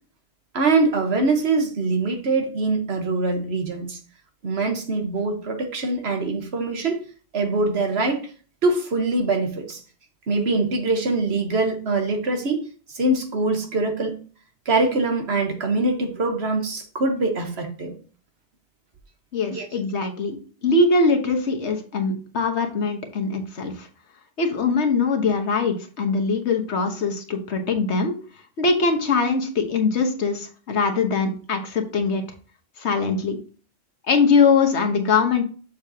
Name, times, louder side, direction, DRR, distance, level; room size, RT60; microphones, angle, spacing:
voice 1, 0.5-4.0 4.4-7.0 7.3-8.3 8.6-9.8 10.3-12.6 12.9-14.2 14.6-17.9 19.5-19.7, right 3 dB, 65° right, 1.4 m, -23 dB
voice 2, 19.3-23.9 24.4-28.2 28.6-32.2 32.8-33.4 34.1-35.4, left 4 dB, 70° left, 1.5 m, -22 dB
6.7 x 6.5 x 2.8 m
omnidirectional pair, 1.2 m